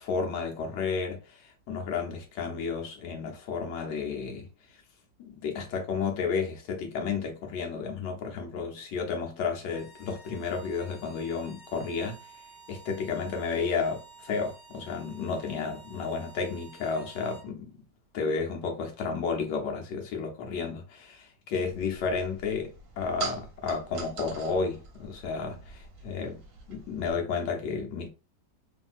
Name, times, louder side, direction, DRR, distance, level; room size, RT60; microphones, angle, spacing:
voice 1, 0.0-4.5 5.2-12.2 12.7-17.7 18.1-26.4 26.7-28.1, left 5 dB, 80° left, 1.4 m, -32 dB
sound 1, 9.7-17.5, right 4 dB, 45° left, 1.4 m, -52 dB
sound 2, 21.6-27.1, right 5 dB, 60° right, 1.0 m, -43 dB
3.3 x 2.6 x 2.4 m
omnidirectional pair, 1.9 m